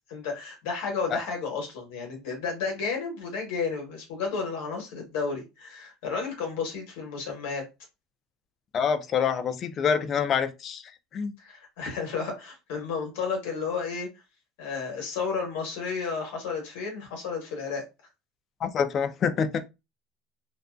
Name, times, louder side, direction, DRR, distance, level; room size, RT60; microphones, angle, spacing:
voice 1, 0.0-7.6 11.4-14.1 14.6-17.8, left 5 dB, 75° left, 1.0 m, -32 dB
voice 2, 8.7-10.8 11.1-11.3 18.6-19.6, left 7 dB, 35° left, 0.3 m, -26 dB
2.5 x 2.2 x 2.2 m
supercardioid pair, 140°, 0 cm